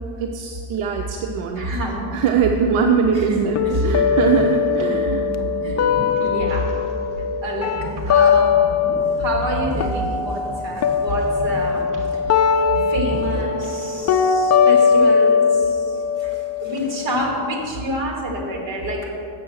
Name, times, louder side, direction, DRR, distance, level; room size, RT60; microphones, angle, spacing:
voice 1, 0.2-1.7 2.1-5.3, right 6 dB, 85° right, 3 dB, 0.7 m, -21 dB
voice 2, 1.6-2.1 3.1-3.9 4.9-5.8 6.2-6.8 7.4-8.5 9.2-12.1 12.4-19.1, equal, 60° right, 0 dB, 2.1 m, -27 dB
sound 1, 3.6-9.5 9.8-17.6, left 6 dB, 35° left, 0.4 m, -20 dB
sound 2, 4.0-14.4 14.7-14.8 15.4-15.8 16.3-18.1, right 2 dB, 40° right, 1.1 m, -38 dB
7.5 x 6.1 x 6.3 m, 2.6 s
cardioid pair, 135°, 50 cm